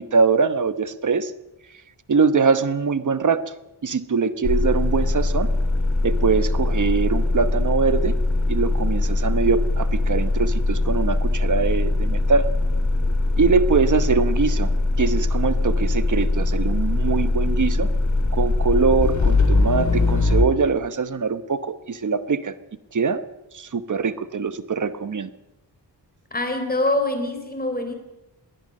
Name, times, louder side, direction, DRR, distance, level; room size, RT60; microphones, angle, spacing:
voice 1, 0.0-1.3 2.1-3.4 3.8-5.5 6.0-8.1 8.5-12.5 13.4-14.7 15.0-17.9 18.3-22.5 22.9-23.2 23.5-25.3, right 5 dB, 45° right, 12 dB, 1.1 m, -22 dB
sound 1, 4.4-20.5, left 2 dB, 40° left, 2.8 m, -21 dB
voice 2, 26.3-27.9, left 2 dB, 20° left, 6 dB, 3.9 m, -24 dB
22.0 x 17.0 x 7.6 m, 0.98 s
wide cardioid pair, 165°, 42 cm